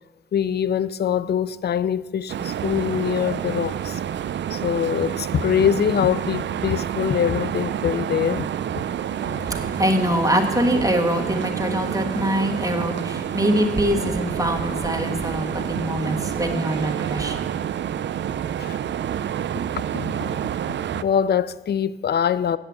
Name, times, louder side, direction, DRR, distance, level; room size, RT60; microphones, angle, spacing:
voice 1, 0.3-4.0 4.5-8.5 18.6-18.8 19.9-20.3 21.0-22.6, left 8 dB, 55° left, 0.4 m, -23 dB
sound 1, 2.3-21.0, right 9 dB, 70° right, 0.4 m, -28 dB
voice 2, 9.1-17.4, equal, 15° right, 1.5 m, -24 dB
8.0 x 7.6 x 8.4 m
cardioid pair, 70°, 20 cm